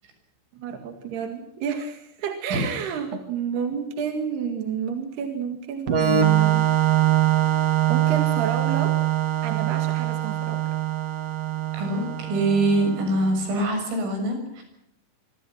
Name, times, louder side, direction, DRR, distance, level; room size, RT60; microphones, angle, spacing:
voice 1, 0.5-6.7 7.9-9.0 9.4-10.6, right 7 dB, 60° right, 6 dB, 3.7 m, -30 dB
Organ, 5.9-13.4, right 11 dB, 45° right, 2.2 m, -23 dB
voice 2, 11.7-14.6, right 2 dB, 90° right, 5 dB, 9.4 m, -24 dB
25.5 x 25.0 x 5.9 m, 0.75 s
omnidirectional pair, 5.7 m